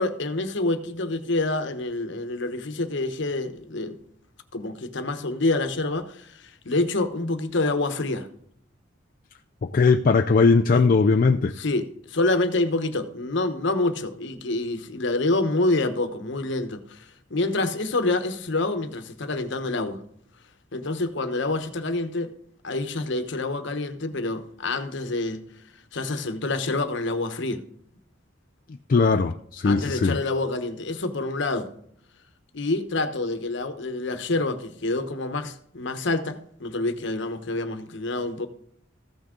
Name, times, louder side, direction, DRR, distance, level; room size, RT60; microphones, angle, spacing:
voice 1, 0.0-4.0 4.5-8.3 10.7-10.9 11.6-20.0 20.7-22.3 22.6-25.5 25.9-27.6 29.6-31.7 32.5-38.5, left 2 dB, 65° left, 1.0 m, -27 dB
voice 2, 9.6-11.5 28.9-30.2, left 4 dB, 45° left, 0.4 m, -19 dB
14.5 x 6.2 x 3.7 m
head